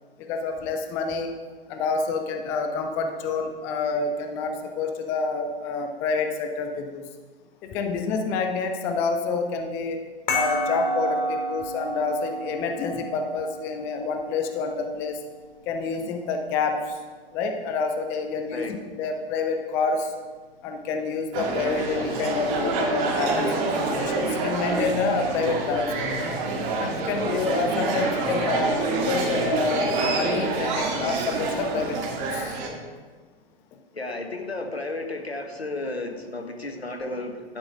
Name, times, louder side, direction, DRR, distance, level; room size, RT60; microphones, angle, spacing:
voice 1, 0.3-1.3 1.7-7.0 7.6-10.0 10.3-15.2 15.7-17.0 17.3-20.1 20.6-26.3 26.8-32.5, left 4 dB, 10° left, 5 dB, 0.3 m, -28 dB
sound 1, 10.3-15.4, equal, 50° left, 2.7 m, -30 dB
sound 2, 21.3-32.7, right 3 dB, 35° right, 2.1 m, -27 dB
voice 2, 33.9-37.6, left 2 dB, 85° left, 4 dB, 1.5 m, -33 dB
11.5 x 9.5 x 3.7 m, 1.4 s
figure-of-eight pair, 115°, 31 cm